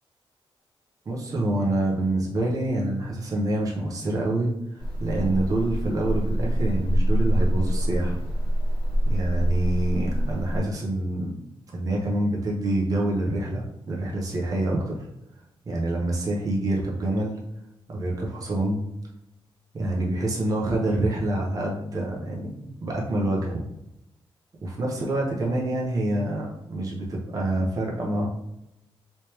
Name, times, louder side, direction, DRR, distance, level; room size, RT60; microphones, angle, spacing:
voice 1, 1.1-8.2 9.0-11.3 11.7-15.0 15.7-17.4 17.9-18.9 19.7-23.6 24.6-28.3, right 1 dB, 35° right, -2 dB, 0.8 m, -26 dB
sound 1, 4.8-10.6, equal, 55° left, 1.3 m, -25 dB
3.3 x 3.2 x 3.0 m, 0.84 s
wide cardioid pair, 175°, 10 cm